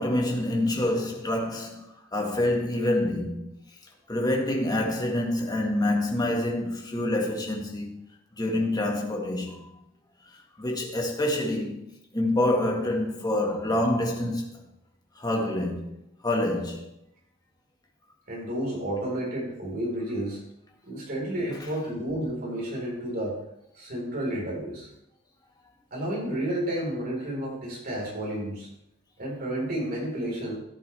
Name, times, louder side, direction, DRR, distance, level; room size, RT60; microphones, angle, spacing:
voice 1, 0.0-3.6 4.1-8.0 8.4-9.8 10.6-11.9 12.1-14.6 15.2-15.9 16.2-16.9, left 1 dB, 20° left, 1.8 m, -27 dB
voice 2, 18.3-20.4 20.8-23.4 23.7-24.9 25.9-28.7 29.2-30.6, right 1 dB, 50° right, 4.5 m, -31 dB
14.0 x 8.6 x 3.5 m
head